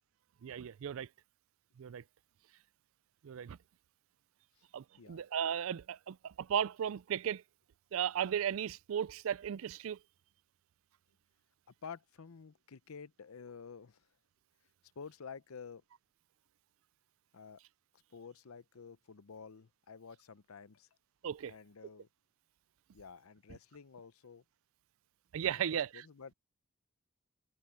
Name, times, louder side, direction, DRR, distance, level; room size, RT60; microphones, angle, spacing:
voice 1, 0.4-1.1 1.8-2.0 3.2-3.6 4.7-7.4 7.9-10.0 21.2-21.5 25.3-25.9, right 9 dB, 70° right, 0.4 m, -35 dB
voice 2, 11.8-14.1 15.0-15.8 17.3-17.6 18.1-20.9 21.5-22.1 22.9-24.4 25.5-26.3, left 6 dB, 80° left, 0.7 m, -50 dB
head